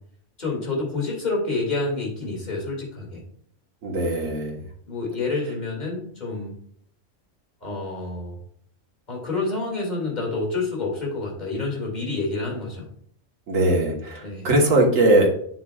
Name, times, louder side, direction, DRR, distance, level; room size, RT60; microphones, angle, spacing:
voice 1, 0.4-3.2 4.9-6.6 7.6-8.4 9.1-12.9 14.2-14.5, left 3 dB, 35° left, -2 dB, 2.5 m, -28 dB
voice 2, 3.8-4.6 13.5-15.3, right 1 dB, 80° right, 0 dB, 1.8 m, -20 dB
7.8 x 7.3 x 2.4 m, 0.63 s
omnidirectional pair, 1.4 m